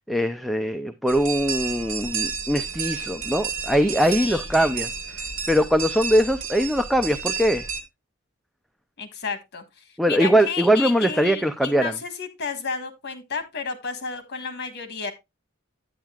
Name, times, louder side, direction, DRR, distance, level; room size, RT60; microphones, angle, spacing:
voice 1, 0.1-4.9 5.5-7.6 10.0-11.9, equal, ahead, 0.5 m, -21 dB
sound 1, 1.1-7.8, right 5 dB, 80° right, 1.6 m, -31 dB
voice 2, 9.0-15.1, left 5 dB, 55° left, 1.5 m, -32 dB
9.1 x 8.9 x 2.3 m
head